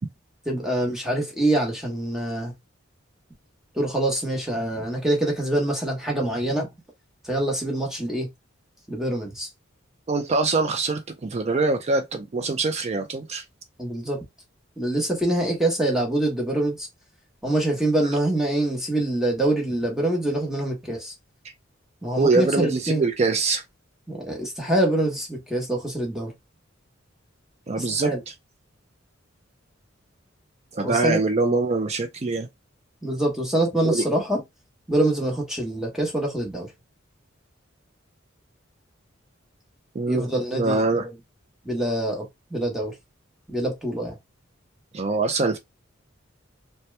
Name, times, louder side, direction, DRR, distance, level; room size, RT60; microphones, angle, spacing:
voice 1, 0.4-2.5 3.7-6.7 7.2-8.3 8.9-9.5 13.8-14.2 14.8-16.9 17.4-21.1 22.0-23.0 24.1-26.3 27.8-28.2 30.8-31.2 33.0-34.4 34.9-36.7 40.1-41.1 41.6-42.9 43.5-44.2, right 1 dB, ahead, 1.0 m, -25 dB
voice 2, 10.1-13.4 22.2-23.6 27.7-28.1 30.7-32.5 33.8-34.0 39.9-40.3 40.5-41.0 44.9-45.6, right 3 dB, 35° right, 0.4 m, -23 dB
2.8 x 2.2 x 3.2 m
head